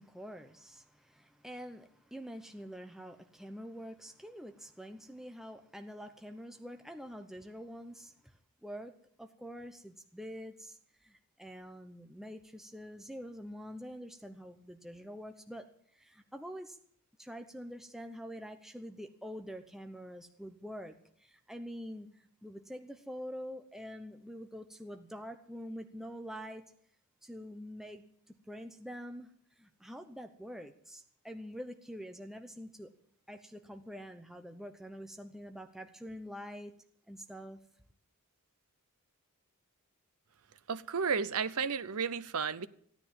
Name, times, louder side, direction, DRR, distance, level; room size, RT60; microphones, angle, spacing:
voice 1, 0.0-8.9 9.2-16.8 17.2-26.6 27.2-29.3 29.6-32.9 33.3-36.7 37.1-37.6, equal, ahead, 0.8 m, -46 dB
voice 2, 40.7-42.7, right 6 dB, 80° right, 0.7 m, -33 dB
15.5 x 9.8 x 9.3 m
head